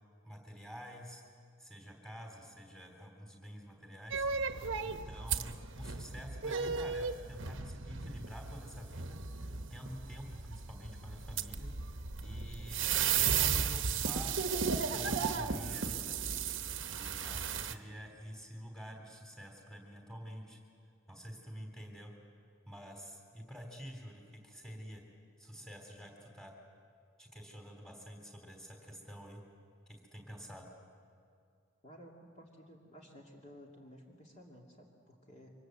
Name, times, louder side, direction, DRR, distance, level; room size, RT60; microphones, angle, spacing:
voice 1, 0.2-1.2 1.6-4.5 4.8-11.7 12.2-12.9 13.2-14.4 14.9-16.3 16.9-20.6 21.1-22.1 22.7-25.0 25.4-26.5 27.2-29.4 29.9-30.7, equal, 5° left, 1 dB, 3.5 m, -48 dB
sound 1, 4.1-17.7, right 6 dB, 60° right, 1.1 m, -35 dB
voice 2, 31.8-35.5, equal, 30° left, -2 dB, 2.7 m, -55 dB
28.0 x 25.0 x 8.0 m, 2.3 s
head